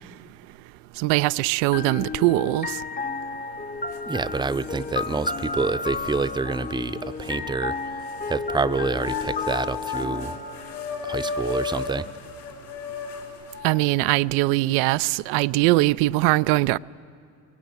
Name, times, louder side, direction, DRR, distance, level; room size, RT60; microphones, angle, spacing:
voice 1, 1.0-2.8 13.6-16.8, right 19 dB, 85° right, 0.6 m, -21 dB
sound 1, 1.7-11.5, left 4 dB, 20° left, 0.9 m, -33 dB
sound 2, 3.9-4.0 4.5-5.4 6.1-6.2 7.2-8.4 9.0-13.9, left 5 dB, 75° left, 3.7 m, -33 dB
voice 2, 4.1-7.8 8.3-10.3 11.0-12.1, right 4 dB, 10° right, 0.7 m, -27 dB
23.5 x 21.0 x 9.4 m
supercardioid pair, 95°, 42 cm